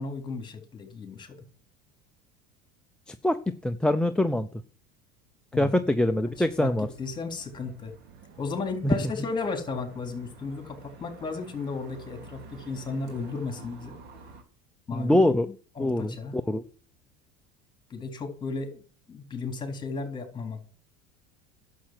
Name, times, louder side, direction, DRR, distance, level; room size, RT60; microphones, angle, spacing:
voice 1, 0.0-1.4 5.5-5.8 6.3-7.9 8.4-13.9 14.9-15.2 15.8-16.4 17.9-18.8 19.1-20.7, left 4 dB, 20° left, 6 dB, 3.8 m, -34 dB
voice 2, 3.1-4.5 5.6-6.9 8.8-9.0 14.9-15.5 15.8-16.6, left 1 dB, 5° left, 7 dB, 0.6 m, -24 dB
sound 1, 6.3-14.4, right 3 dB, 55° right, 3.0 m, -50 dB
11.5 x 7.6 x 7.7 m, 0.41 s
supercardioid pair, 120°, 21 cm